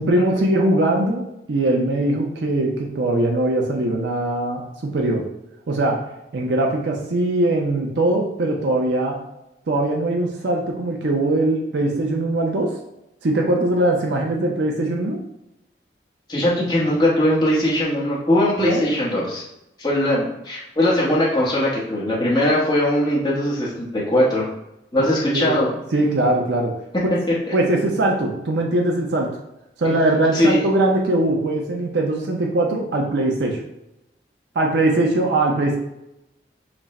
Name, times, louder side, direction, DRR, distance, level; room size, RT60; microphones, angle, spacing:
voice 1, 0.0-5.3 5.7-6.0 6.3-9.2 9.7-12.7 13.2-15.2 18.6-18.9 25.3-26.8 27.0-27.1 27.5-29.4 29.8-33.6 34.6-35.8, right 1 dB, 75° right, 1 dB, 0.6 m, -21 dB
voice 2, 16.3-19.4 19.8-24.4 24.9-25.7 29.8-29.9 30.3-30.6, left 1 dB, 25° left, -7 dB, 0.9 m, -20 dB
5.9 x 2.1 x 4.1 m, 0.90 s
head